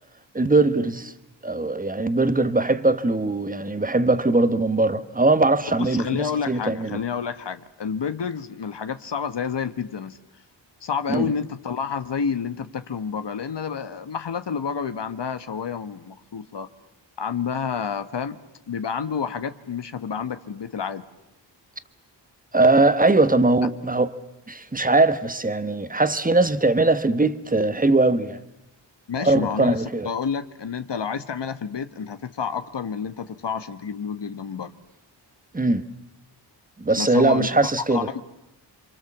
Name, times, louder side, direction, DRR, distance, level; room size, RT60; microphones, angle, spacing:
voice 1, 0.3-1.1 1.4-7.0 11.1-11.3 22.5-24.1 24.5-28.4 29.2-30.1 35.5-35.9 36.8-38.1, right 2 dB, 20° right, 1.3 m, -20 dB
voice 2, 5.8-10.2 10.8-16.7 17.2-18.4 18.7-21.0 29.1-34.7 37.0-37.5 37.9-38.2, left 6 dB, 70° left, 1.4 m, -29 dB
28.5 x 25.5 x 7.3 m
wide cardioid pair, 100°, 43 cm